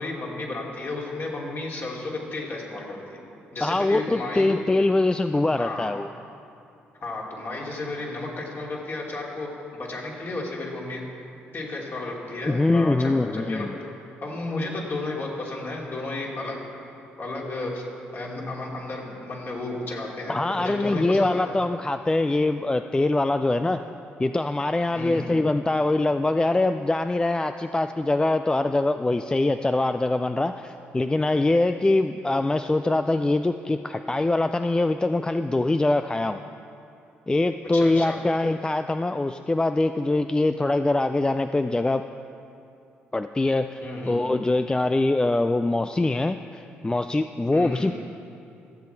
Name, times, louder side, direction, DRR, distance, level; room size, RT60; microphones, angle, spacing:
voice 1, 0.0-3.2 3.5-4.5 5.3-5.9 7.0-11.0 11.5-13.8 14.2-16.6 17.2-17.8 18.1-21.5 24.9-25.3 37.7-38.2 43.8-44.2 47.5-47.9, left 2 dB, 50° left, -3 dB, 2.7 m, -33 dB
voice 2, 3.6-6.1 12.4-13.8 20.3-23.8 24.2-36.4 37.3-42.1 43.1-47.9, left 2 dB, 15° left, 9 dB, 0.3 m, -23 dB
15.0 x 7.6 x 4.5 m, 2.7 s
supercardioid pair, 55°, 5 cm